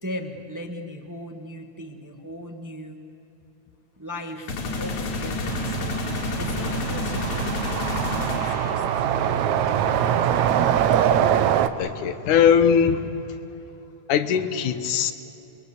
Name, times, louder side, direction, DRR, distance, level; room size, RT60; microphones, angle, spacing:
voice 1, 0.0-3.0 4.0-8.9 9.3-10.1, left 1 dB, 15° right, 4 dB, 0.7 m, -38 dB
sound 1, 4.5-9.2, left 3 dB, 70° left, 3.7 m, -30 dB
sound 2, 5.5-11.7, right 9 dB, 75° right, 2.2 m, -23 dB
voice 2, 11.8-13.1 14.1-15.1, left 7 dB, 85° left, 10 dB, 2.7 m, -20 dB
28.0 x 22.5 x 8.3 m, 2.9 s
omnidirectional pair, 3.4 m